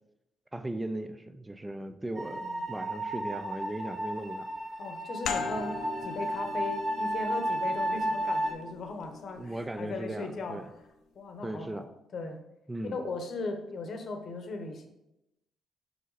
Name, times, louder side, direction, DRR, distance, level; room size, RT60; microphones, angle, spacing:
voice 1, 0.5-4.5 9.4-10.7 11.4-11.9 12.7-13.0, right 1 dB, 15° right, 10 dB, 0.5 m, -37 dB
sound 1, 2.1-8.5, right 1 dB, 35° right, 2.1 m, -33 dB
voice 2, 2.3-2.6 4.8-5.8 6.0-10.6 11.1-12.4 12.8-14.9, left 3 dB, 55° left, 6 dB, 1.0 m, -38 dB
sound 2, 5.2-10.5, left 5 dB, 75° left, 0.7 m, -40 dB
5.6 x 5.1 x 4.0 m, 0.89 s
cardioid pair, 90°, 0 cm